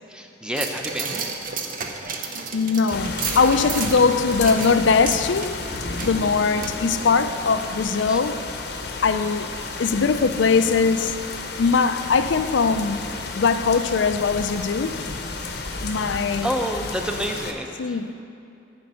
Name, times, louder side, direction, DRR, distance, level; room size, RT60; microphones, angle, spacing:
voice 1, 0.1-1.4 8.0-8.2 16.4-18.0, equal, 5° right, 0.6 m, -29 dB
sound 1, 0.5-7.4 7.8-7.9, right 5 dB, 45° right, 0.8 m, -33 dB
voice 2, 2.3-5.6 6.0-8.4 9.0-9.5 9.8-11.2 11.6-15.0 15.8-16.5 17.8-18.2, left 5 dB, 80° left, 0.5 m, -21 dB
sound 2, 2.9-17.5, left 3 dB, 60° left, 0.8 m, -32 dB
10.5 x 5.2 x 8.3 m
head